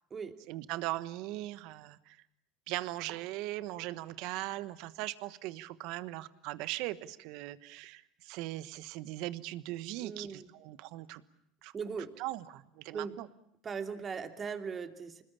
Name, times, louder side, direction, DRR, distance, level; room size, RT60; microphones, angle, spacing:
voice 1, 0.5-2.2 2.7-11.2 11.6-11.7 12.2-13.3, right 17 dB, 70° right, 15 dB, 1.2 m, -39 dB
voice 2, 10.0-10.5 11.7-12.1 12.9-13.2 13.6-15.2, right 6 dB, 30° right, 6 dB, 2.8 m, -39 dB
26.0 x 20.5 x 8.7 m, 0.73 s
supercardioid pair, 90°, 0 cm